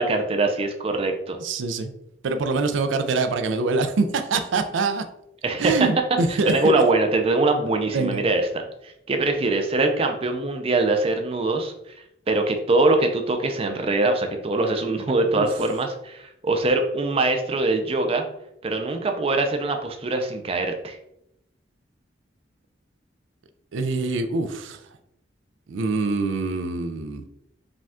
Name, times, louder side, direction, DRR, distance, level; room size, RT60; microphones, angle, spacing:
voice 1, 0.0-1.4 5.4-5.7 6.3-11.7 12.3-18.2 18.6-21.0, right 2 dB, 30° right, 5 dB, 0.5 m, -23 dB
voice 2, 1.4-1.9 2.2-5.0 5.6-6.8 7.9-8.2 15.3-15.5 23.7-24.8 25.7-27.2, right 3 dB, 85° right, 9 dB, 0.4 m, -24 dB
5.0 x 2.3 x 3.5 m, 0.81 s
head